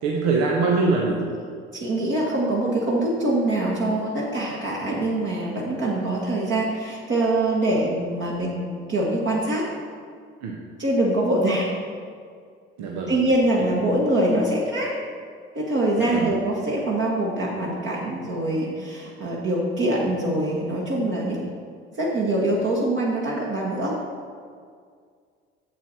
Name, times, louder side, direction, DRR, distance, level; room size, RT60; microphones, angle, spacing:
voice 1, 0.0-1.3 10.4-10.6 12.8-13.1 16.0-16.3, right 3 dB, 60° right, -1 dB, 1.0 m, -23 dB
voice 2, 1.7-9.6 10.8-11.7 13.1-14.9 15.5-21.5 22.0-24.0, right 1 dB, 40° right, -4 dB, 1.6 m, -24 dB
7.4 x 7.2 x 4.2 m, 2.1 s
figure-of-eight pair, 55°, 30 cm